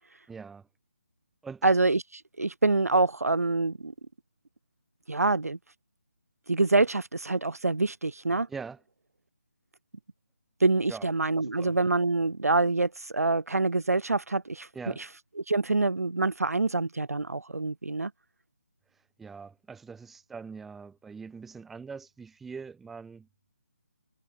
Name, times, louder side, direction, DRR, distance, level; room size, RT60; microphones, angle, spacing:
voice 1, 0.3-0.7 1.4-1.6 8.5-8.8 10.9-11.1 11.4-11.8 14.7-15.0 19.2-23.3, right 5 dB, ahead, 3.8 m, -42 dB
voice 2, 1.6-3.9 5.1-5.6 6.5-8.5 10.6-14.7 15.5-18.1, right 3 dB, 90° right, 6.2 m, -26 dB
figure-of-eight pair, 180°, 8 cm